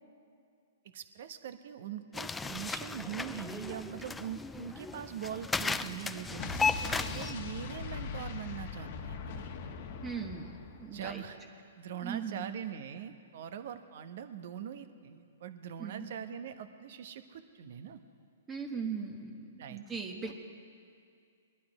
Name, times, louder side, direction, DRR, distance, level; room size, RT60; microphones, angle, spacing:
voice 1, 0.8-9.5 10.9-11.4 11.8-18.0 19.6-19.8 20.2-20.3, right 9 dB, 60° right, 9 dB, 1.0 m, -42 dB
sound 1, 2.1-7.3, left 4 dB, 10° left, 0.4 m, -35 dB
Explosion, 6.4-11.2, left 5 dB, 55° left, 1.2 m, -41 dB
voice 2, 10.0-11.2 12.0-12.5 15.8-16.1 18.5-20.3, right 5 dB, 15° right, 3 dB, 1.2 m, -39 dB
20.5 x 11.5 x 4.9 m, 2.3 s
hypercardioid pair, 130°, 0 cm